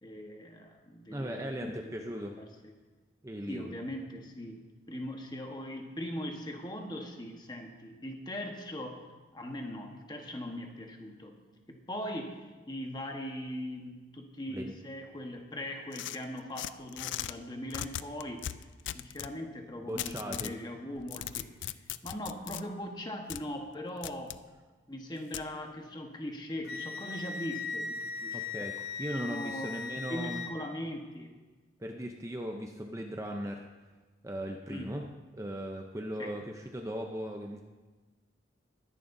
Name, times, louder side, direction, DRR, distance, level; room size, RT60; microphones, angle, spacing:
voice 1, 0.0-1.8 2.4-2.7 3.5-11.4 11.7-18.6 18.9-24.4 24.9-28.7 29.2-29.8 30.0-31.3 34.7-35.1 36.2-36.3, left 1 dB, 25° left, 3 dB, 1.2 m, -40 dB
voice 2, 1.1-2.4 3.2-3.8 14.5-14.7 19.8-20.5 28.3-28.7 29.0-30.4 31.8-33.7 34.2-35.1 35.3-37.6, equal, 15° right, 2 dB, 0.6 m, -38 dB
sound 1, 15.9-17.3 17.7-19.3 20.0-20.6 21.0-22.6 23.3-23.4 24.0-24.4 25.3-25.5, left 12 dB, 85° left, 0.4 m, -38 dB
Wind instrument woodwind instrument, 26.6-30.5, left 5 dB, 60° left, 0.8 m, -38 dB
20.5 x 11.0 x 2.7 m, 1.3 s
head